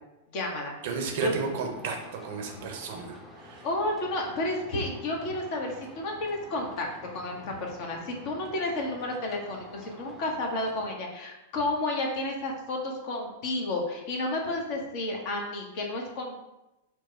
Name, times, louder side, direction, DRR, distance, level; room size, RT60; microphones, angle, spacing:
voice 1, 0.3-0.7 1.2-1.3 2.5-2.7 3.6-16.4, left 2 dB, 45° left, 0 dB, 0.9 m, -31 dB
voice 2, 0.8-3.6, right 5 dB, 55° right, 2 dB, 0.8 m, -33 dB
sound 1, 1.1-10.9, equal, 5° left, 0.7 m, -49 dB
4.6 x 2.2 x 4.4 m, 0.95 s
figure-of-eight pair, 100°, 0 cm